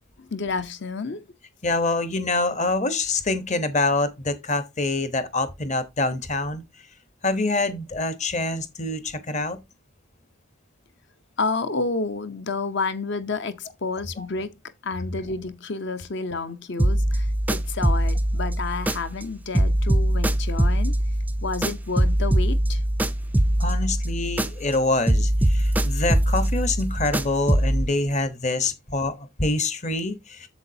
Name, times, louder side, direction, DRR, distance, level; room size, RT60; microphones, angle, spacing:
voice 1, 0.3-1.2 11.4-20.9 21.4-22.8, left 3 dB, 55° left, 0.7 m, -30 dB
voice 2, 1.6-6.6 7.2-9.6 14.2-14.3 23.6-30.5, left 2 dB, 35° left, 0.9 m, -25 dB
sound 1, 16.8-19.3 19.5-24.8 25.1-27.9, right 1 dB, 10° right, 0.4 m, -22 dB
8.1 x 7.0 x 2.7 m
head